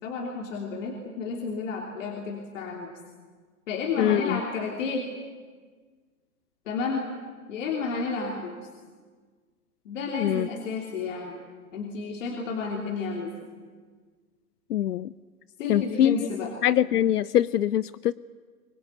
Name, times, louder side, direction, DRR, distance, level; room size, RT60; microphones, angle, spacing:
voice 1, 0.0-2.9 3.7-5.1 6.7-7.1 7.5-8.5 9.8-11.4 11.7-13.3 15.6-16.5, left 4 dB, 55° left, 1 dB, 3.2 m, -31 dB
voice 2, 4.0-4.4 10.2-10.5 14.7-15.1 15.7-16.2 16.6-18.1, left 11 dB, 80° left, 19 dB, 0.6 m, -23 dB
24.0 x 19.5 x 9.4 m, 1.5 s
hypercardioid pair, 140°, 46 cm